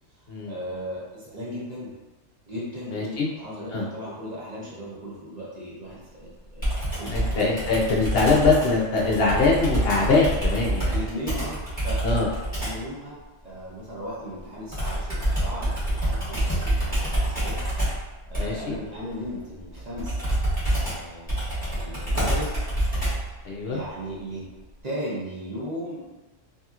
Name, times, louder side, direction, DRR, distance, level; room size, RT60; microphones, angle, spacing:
voice 1, 0.5-1.9 2.4-6.7 7.0-7.6 10.6-12.0 12.6-17.9 18.3-20.3 20.9-22.5 23.7-24.4 24.8-26.2, equal, 40° right, -7 dB, 0.8 m, -36 dB
voice 2, 2.9-3.3 3.7-3.9 7.1-10.9 12.0-12.3 18.4-18.8 23.4-23.8, left 3 dB, 60° left, -2 dB, 0.7 m, -22 dB
Computer keyboard, 6.6-12.9 14.7-23.4, right 1 dB, 10° left, 1.0 m, -27 dB
2.8 x 2.7 x 2.4 m, 1.2 s
omnidirectional pair, 1.3 m